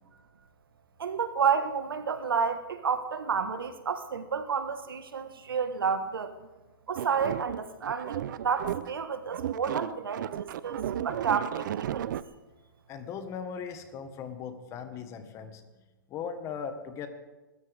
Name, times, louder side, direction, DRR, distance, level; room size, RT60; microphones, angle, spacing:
voice 1, 1.0-6.3 6.9-12.1, right 6 dB, 90° right, 9 dB, 1.5 m, -30 dB
sound 1, 7.0-9.0 9.3-12.2, right 11 dB, 60° right, 0.6 m, -34 dB
voice 2, 12.9-15.6 16.1-17.1, left 6 dB, 25° left, 8 dB, 1.5 m, -38 dB
23.5 x 13.5 x 3.5 m, 1.2 s
hypercardioid pair, 140°, 12 cm